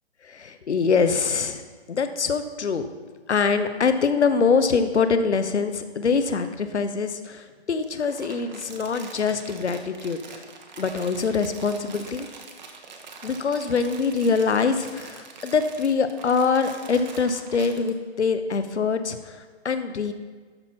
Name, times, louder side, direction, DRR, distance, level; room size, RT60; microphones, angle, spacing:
voice 1, 0.2-2.9 3.3-10.4 10.8-12.3 13.2-20.1, left 5 dB, 90° left, 9 dB, 1.0 m, -24 dB
Crumpling crinkling, 7.8-17.9, right 4 dB, 40° right, 1.2 m, -44 dB
12.5 x 5.6 x 4.5 m, 1.5 s
hypercardioid pair, 155°, 33 cm